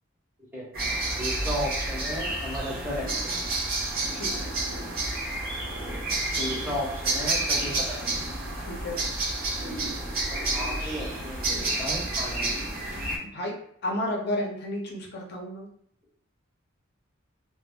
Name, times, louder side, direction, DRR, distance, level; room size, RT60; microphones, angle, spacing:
sound 1, 0.7-13.2, right 2 dB, 45° right, 0.6 m, -30 dB
voice 1, 1.2-3.4 6.4-8.0 10.3-12.5, equal, 10° right, -4 dB, 0.6 m, -34 dB
voice 2, 4.1-4.5 8.7-9.0 13.3-13.5 13.8-15.7, left 1 dB, 50° left, -1 dB, 0.5 m, -32 dB
2.1 x 2.0 x 3.5 m, 0.68 s
head